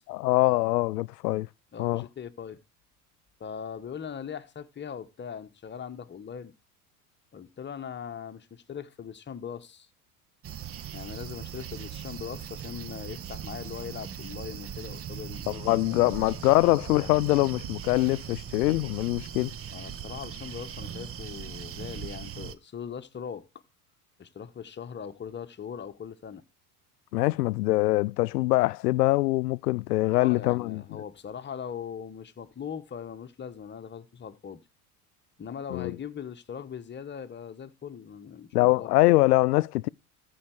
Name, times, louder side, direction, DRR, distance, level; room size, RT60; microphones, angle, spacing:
voice 1, 0.1-1.5 1.8-2.0 15.5-19.5 27.1-30.8 35.7-35.9 38.5-39.9, left 20 dB, 80° left, 0.5 m, -23 dB
voice 2, 1.7-2.6 3.4-6.5 7.3-9.9 10.9-16.1 19.7-23.5 24.2-26.4 30.1-34.6 35.4-38.9, left 7 dB, 25° left, 1.1 m, -40 dB
sound 1, 10.4-22.5, right 9 dB, 30° right, 0.9 m, -39 dB
14.5 x 4.8 x 4.6 m
hypercardioid pair, 80°, 46 cm